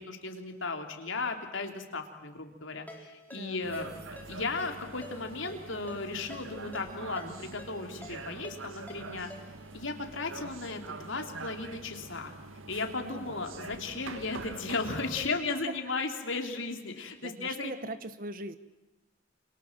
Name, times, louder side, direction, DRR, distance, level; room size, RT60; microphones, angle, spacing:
voice 1, 0.0-3.9 4.3-9.3 9.7-12.3 12.7-17.7, left 3 dB, 70° left, 4 dB, 3.4 m, -35 dB
Ringtone, 2.9-9.7, left 1 dB, 10° left, 3.7 m, -50 dB
sound 1, 3.6-15.3, right 3 dB, 85° right, 1.9 m, -45 dB
voice 2, 12.9-13.3 15.3-15.7 17.0-18.6, right 2 dB, 45° right, 12 dB, 1.4 m, -41 dB
29.0 x 27.5 x 7.5 m, 1.1 s
head